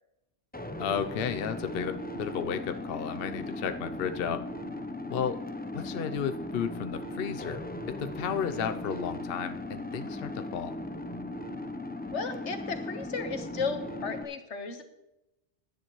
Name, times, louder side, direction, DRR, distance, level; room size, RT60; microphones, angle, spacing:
sound 1, 0.5-14.2, left 1 dB, 10° left, 0.6 m, -38 dB
voice 1, 0.8-4.4 5.1-5.4 5.7-10.8, left 7 dB, 60° left, 9 dB, 0.8 m, -33 dB
voice 2, 12.1-14.8, left 4 dB, 85° left, 7 dB, 1.5 m, -34 dB
16.5 x 10.5 x 3.1 m, 0.90 s
omnidirectional pair, 1.2 m